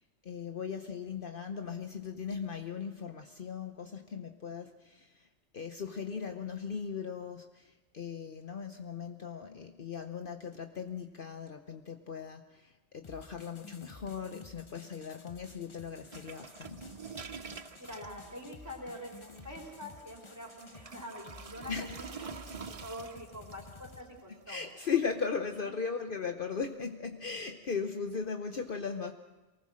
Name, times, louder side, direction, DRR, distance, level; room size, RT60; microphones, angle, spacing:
voice 1, 0.0-5.3 5.5-16.9 21.7-22.0 24.5-29.1, left 6 dB, 55° left, 6 dB, 1.0 m, -38 dB
sound 1, 13.0-24.0, left 3 dB, 30° left, 0.9 m, -53 dB
sound 2, 16.1-25.4, right 5 dB, 35° right, 0.7 m, -48 dB
voice 2, 17.8-24.7, left 1 dB, 15° right, -1 dB, 3.8 m, -46 dB
24.0 x 19.0 x 6.3 m, 1.1 s
omnidirectional pair, 1.2 m